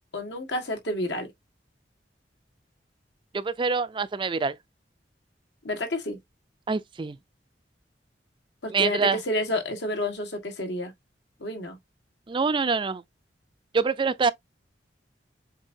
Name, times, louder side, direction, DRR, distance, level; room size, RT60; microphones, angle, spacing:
voice 1, 0.1-1.3 5.6-6.2 8.6-10.9 11.4-11.8, left 1 dB, 80° left, 1.7 m, -30 dB
voice 2, 3.3-4.6 6.7-7.2 8.7-9.2 12.3-13.0 13.7-14.3, right 4 dB, 30° right, 0.4 m, -25 dB
7.4 x 2.7 x 2.6 m
head